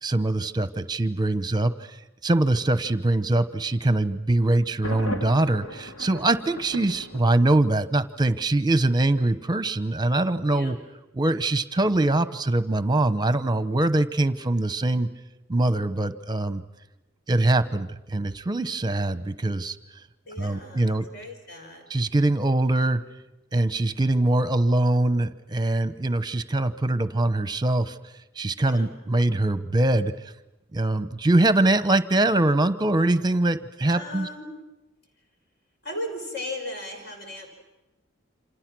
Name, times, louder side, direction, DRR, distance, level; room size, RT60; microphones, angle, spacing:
voice 1, 0.0-1.7 2.2-10.8 11.2-15.1 15.5-16.6 17.3-19.8 20.4-21.1 21.9-23.0 23.5-28.0 28.4-30.1 30.7-34.3, right 2 dB, 20° right, 12 dB, 0.9 m, -23 dB
Thunder, 4.8-7.8, left 1 dB, 90° left, 2.5 m, -37 dB
voice 2, 20.3-21.8 28.6-29.0 33.8-34.5 35.8-37.5, left 1 dB, 55° left, 3 dB, 5.5 m, -36 dB
28.5 x 27.0 x 6.2 m, 1.0 s
head